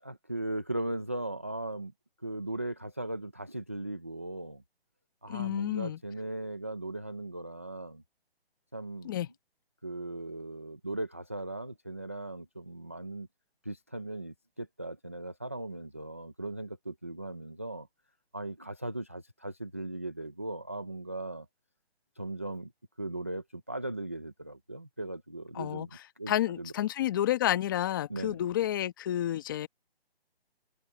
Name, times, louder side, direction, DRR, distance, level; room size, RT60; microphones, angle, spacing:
voice 1, 0.0-1.9 2.2-4.6 5.2-8.0 8.7-9.1 9.8-13.3 13.6-17.9 18.3-21.5 22.2-22.7 23.0-25.9 26.2-26.7 28.1-28.4, right 2 dB, 15° right, 0.4 m, -38 dB
voice 2, 5.3-6.0 9.0-9.3 25.5-25.9 26.3-29.7, left 12 dB, 20° left, 1.3 m, -30 dB
hypercardioid pair, 165°, 31 cm